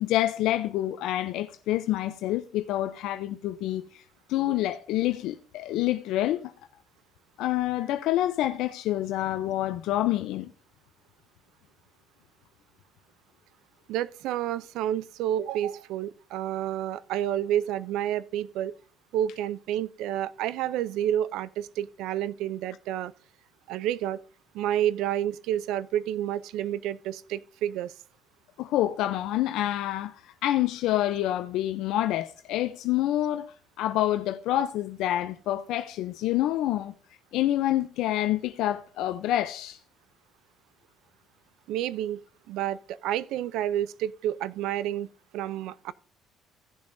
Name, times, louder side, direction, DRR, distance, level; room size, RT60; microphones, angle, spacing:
voice 1, 0.0-4.0 4.3-6.5 7.4-10.5 28.6-33.5 33.8-37.0 37.3-39.8, left 14 dB, 75° left, 0.6 m, -27 dB
voice 2, 13.9-18.8 19.1-23.1 23.7-24.2 24.5-27.9 41.7-42.2 42.5-45.9, right 11 dB, 80° right, 0.5 m, -29 dB
16.5 x 7.0 x 2.6 m
cardioid pair, 120°, 0 cm